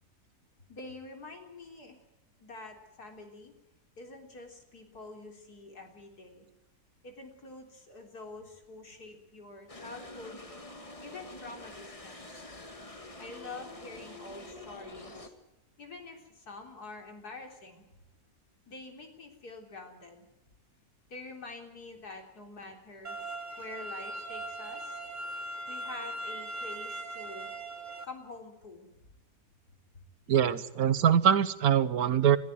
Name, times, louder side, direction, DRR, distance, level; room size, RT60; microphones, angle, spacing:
voice 1, 0.7-2.0 2.4-3.5 4.0-6.5 7.0-10.4 11.0-12.4 13.2-15.3 15.8-17.8 18.7-20.3 21.1-23.2 23.6-25.0 25.7-27.5 28.0-28.9, left 3 dB, 85° left, 4 dB, 4.1 m, -46 dB
sound 1, 9.7-15.3, left 2 dB, 20° left, 2.0 m, -47 dB
sound 2, 23.0-28.0, right 1 dB, 30° right, 1.8 m, -39 dB
voice 2, 30.3-32.4, right 9 dB, 75° right, 15 dB, 1.5 m, -23 dB
21.0 x 14.5 x 9.3 m, 1.0 s
omnidirectional pair, 1.6 m